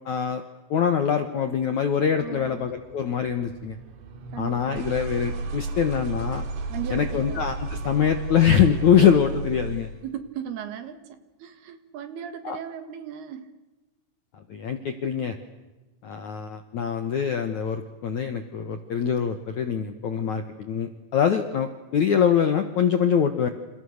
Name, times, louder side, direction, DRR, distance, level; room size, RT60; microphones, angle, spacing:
voice 1, 0.1-0.4 0.7-3.8 4.4-6.4 6.9-9.9 12.4-12.6 14.5-15.4 16.0-23.5, left 8 dB, 65° left, 8 dB, 1.9 m, -24 dB
sound 1, 2.1-10.0, right 3 dB, 80° right, 5.3 m, -34 dB
voice 2, 2.2-2.7 4.3-4.9 6.7-7.4 10.0-13.5, right 9 dB, 65° right, 10 dB, 3.3 m, -37 dB
29.0 x 28.5 x 6.6 m, 1.1 s
omnidirectional pair, 5.4 m